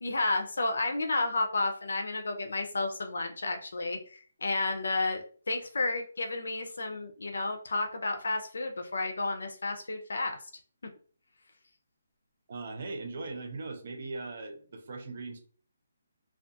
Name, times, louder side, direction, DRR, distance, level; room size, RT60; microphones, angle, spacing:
voice 1, 0.0-10.4, left 2 dB, 90° left, 5 dB, 0.5 m, -31 dB
voice 2, 12.5-15.4, right 3 dB, 35° right, 4 dB, 0.5 m, -39 dB
2.3 x 2.3 x 2.6 m, 0.43 s
hypercardioid pair, 180°, 0 cm